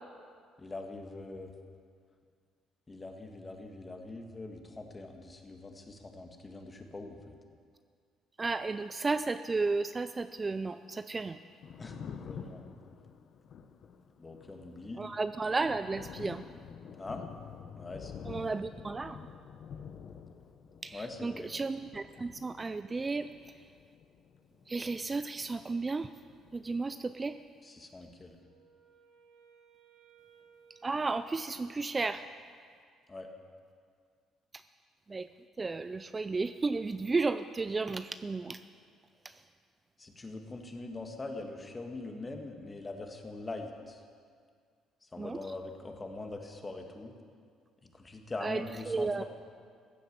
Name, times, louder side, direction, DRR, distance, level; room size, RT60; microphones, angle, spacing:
voice 1, 0.6-1.5 2.9-7.4 11.8-12.7 14.2-15.0 17.0-17.3 17.8-18.5 20.9-21.5 27.6-28.3 33.1-33.3 40.0-44.0 45.0-47.1 47.8-49.2, left 2 dB, 25° left, 4 dB, 1.7 m, -43 dB
voice 2, 8.4-11.4 15.0-16.4 18.2-19.3 20.8-23.3 24.7-26.1 26.5-27.4 30.8-32.2 35.1-35.3 35.6-38.6 39.2-39.4 45.2-45.4 48.4-49.2, right 3 dB, 25° right, 11 dB, 0.4 m, -33 dB
Thunder, 11.4-25.8 26.1-27.4, left 7 dB, 55° left, 0.8 m, -49 dB
Wind instrument woodwind instrument, 28.1-32.0, right 7 dB, 80° right, 2.6 m, -63 dB
15.5 x 7.9 x 7.4 m, 2.1 s
cardioid pair, 90°, 0 cm